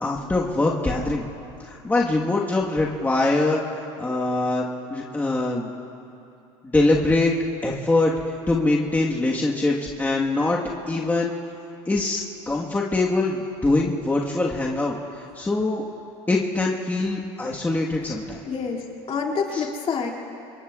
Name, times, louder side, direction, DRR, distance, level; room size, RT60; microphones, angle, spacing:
voice 1, 0.0-1.2 1.6-3.6 4.0-5.7 6.6-7.3 7.6-8.1 8.5-10.6 10.9-11.3 11.9-12.2 12.5-15.9 16.3-18.4 19.5-19.6, left 2 dB, 10° left, -3 dB, 1.4 m, -23 dB
voice 2, 18.5-20.1, left 5 dB, 40° left, 0 dB, 2.5 m, -27 dB
26.0 x 22.5 x 2.4 m, 2.8 s
supercardioid pair, 90°, 14 cm